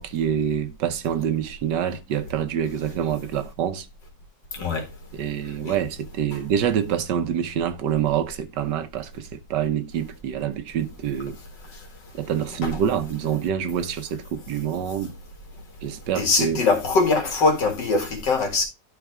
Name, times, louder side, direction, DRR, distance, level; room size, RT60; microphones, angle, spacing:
voice 1, 0.0-3.9 5.1-11.4 12.1-15.1 15.8-16.7, right 9 dB, 80° right, 1.4 m, -26 dB
voice 2, 16.2-18.6, left 3 dB, 80° left, 2.5 m, -22 dB
11.5 x 4.1 x 3.5 m
omnidirectional pair, 1.9 m